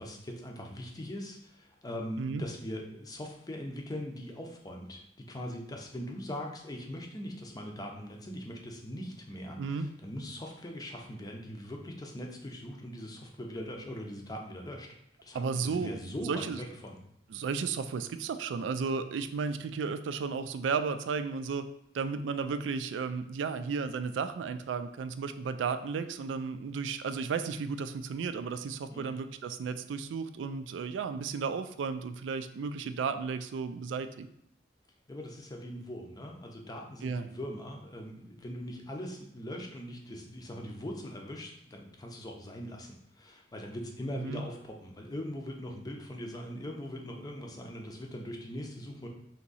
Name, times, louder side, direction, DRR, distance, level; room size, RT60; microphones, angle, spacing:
voice 1, 0.0-14.9 15.2-17.0 28.9-29.2 35.1-49.1, equal, 20° left, 1 dB, 0.6 m, -41 dB
voice 2, 15.3-15.9 16.2-16.6 17.3-21.7 21.9-34.3 37.0-37.3 44.1-44.4, right 5 dB, 90° right, 11 dB, 0.3 m, -34 dB
3.5 x 2.9 x 4.0 m, 0.72 s
head